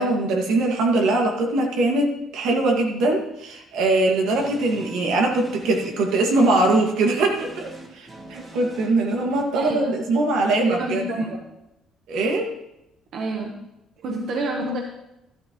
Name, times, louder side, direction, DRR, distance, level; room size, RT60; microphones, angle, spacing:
voice 1, 0.0-11.3 12.1-12.5, right 2 dB, 85° right, 1 dB, 2.1 m, -22 dB
sound 1, 4.2-9.4, right 2 dB, 30° right, 2.0 m, -43 dB
voice 2, 9.5-10.0 10.6-11.4 13.1-13.5 14.0-14.8, right 2 dB, 60° right, 1 dB, 1.2 m, -28 dB
12.5 x 12.0 x 3.1 m, 0.87 s
cardioid pair, 120°, 0 cm